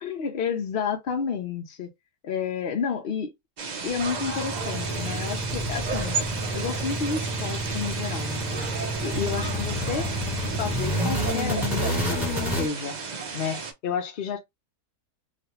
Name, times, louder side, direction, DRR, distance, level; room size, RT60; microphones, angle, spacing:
voice 1, 0.0-1.9 2.2-3.3 3.8-6.2 6.5-8.7 9.0-10.1 10.6-13.0 13.3-14.4, left 6 dB, 55° left, 0.6 m, -31 dB
sound 1, 3.6-13.7, right 4 dB, 75° right, 0.4 m, -33 dB
sound 2, 3.9-12.7, equal, ahead, 1.3 m, -29 dB
3.2 x 2.4 x 2.8 m
omnidirectional pair, 1.7 m